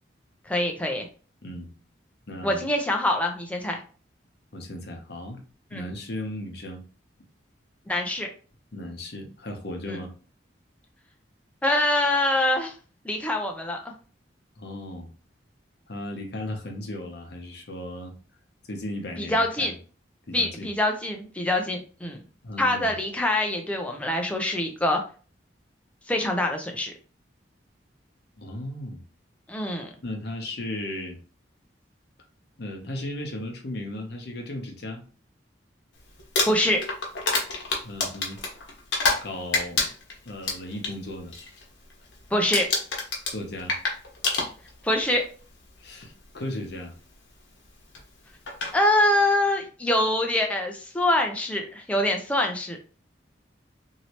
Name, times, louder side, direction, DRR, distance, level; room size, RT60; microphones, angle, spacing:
voice 1, 0.5-1.1 2.4-3.8 5.7-5.9 7.9-8.3 9.9-10.0 11.6-12.7 13.0-13.9 19.2-19.7 20.3-22.2 22.6-25.0 26.1-26.9 29.5-29.9 36.5-36.8 42.3-42.7 44.8-45.2 48.7-52.8, left 1 dB, 5° left, 2 dB, 0.5 m, -24 dB
voice 2, 1.4-1.7 2.3-2.7 4.5-5.4 5.7-6.8 8.7-10.1 14.6-15.1 15.9-18.1 18.7-19.8 20.3-20.7 22.4-23.0 28.4-29.0 30.0-31.2 32.6-35.0 37.8-38.4 39.2-39.9 40.2-41.4 43.3-43.8 45.8-46.9, left 1 dB, 60° left, 3 dB, 0.8 m, -36 dB
Crumpling crinkling, 36.2-39.3 39.5-40.9 41.3-41.6 41.9-42.2 42.5-44.9 45.9-46.0 47.9-48.0 48.5-48.7, left 3 dB, 75° left, 1.0 m, -27 dB
3.1 x 2.7 x 2.8 m, 0.39 s
head